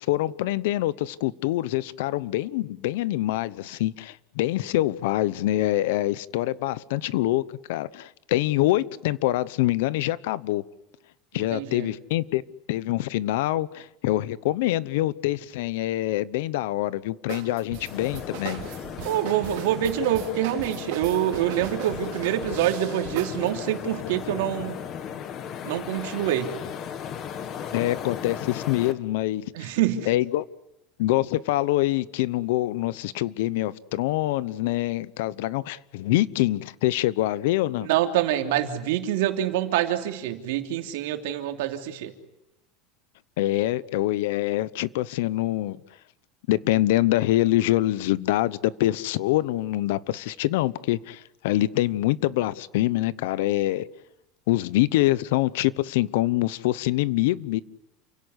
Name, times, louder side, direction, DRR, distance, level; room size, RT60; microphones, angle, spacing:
voice 1, 0.1-7.4 7.7-10.6 11.3-12.4 12.7-18.6 27.7-29.7 30.1-30.4 31.0-37.9 43.4-45.8 46.5-53.9 54.5-57.6, left 16 dB, 70° left, 0.9 m, -25 dB
voice 2, 11.5-11.9 19.0-24.8 25.6-26.5 29.5-30.1 37.8-42.1, right 11 dB, 75° right, 3.1 m, -26 dB
sound 1, 17.3-23.5, right 12 dB, 60° right, 3.5 m, -39 dB
sound 2, 17.8-28.9, left 8 dB, 30° left, 1.6 m, -36 dB
29.5 x 17.0 x 9.7 m
supercardioid pair, 180°, 0 cm